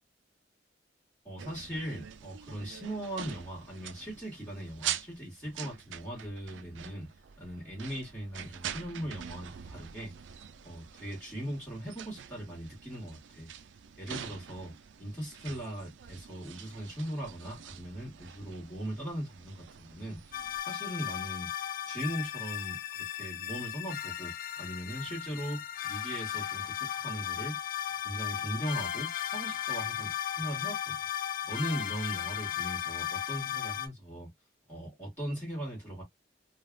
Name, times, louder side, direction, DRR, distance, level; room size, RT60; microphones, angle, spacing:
voice 1, 1.2-7.1 7.4-10.1 10.6-13.5 14.0-14.7 15.0-20.3 20.6-21.5 21.9-24.3 24.6-27.6 28.0-31.0 31.5-34.3 34.7-36.0, equal, 10° left, 1.6 m, -39 dB
sound 1, 1.4-20.6, right 9 dB, 75° right, 0.4 m, -45 dB
sound 2, 20.3-33.9, left 11 dB, 50° left, 0.4 m, -36 dB
3.3 x 2.4 x 2.3 m
head